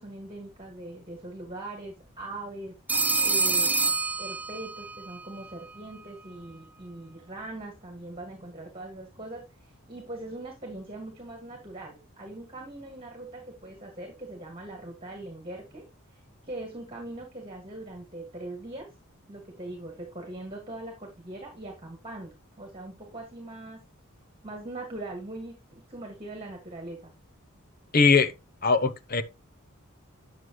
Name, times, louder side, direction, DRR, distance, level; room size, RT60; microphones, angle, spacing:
voice 1, 0.0-3.7 4.2-15.8 16.1-18.9 19.3-23.8 24.4-27.1, right 2 dB, 25° right, 1.9 m, -41 dB
Telephone, 2.9-5.0, right 4 dB, 10° right, 0.5 m, -26 dB
voice 2, 27.9-28.3 28.6-29.2, left 4 dB, 40° left, 0.7 m, -21 dB
9.2 x 6.4 x 3.1 m
head